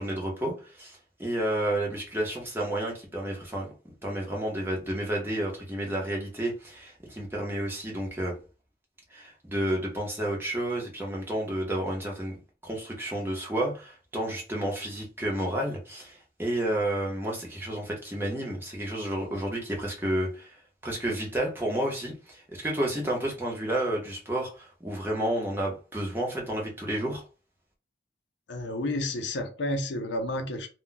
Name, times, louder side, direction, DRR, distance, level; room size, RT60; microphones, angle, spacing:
voice 1, 0.0-3.7 4.0-8.4 9.1-12.4 12.6-27.2, right 1 dB, 10° right, 0.7 m, -31 dB
voice 2, 28.5-30.7, left 1 dB, 70° left, 0.5 m, -31 dB
2.2 x 2.2 x 3.8 m
head